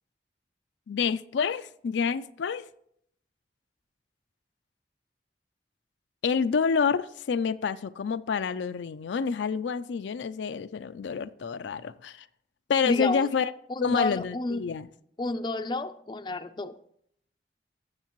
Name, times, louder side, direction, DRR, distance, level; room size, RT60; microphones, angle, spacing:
voice 1, 0.9-2.7 6.2-12.3 12.7-13.5 13.8-14.9, left 6 dB, 85° left, 12 dB, 0.4 m, -28 dB
voice 2, 12.8-13.3 13.7-14.6 15.2-16.8, left 2 dB, 25° left, 10 dB, 0.4 m, -30 dB
17.0 x 6.6 x 3.0 m, 0.69 s
head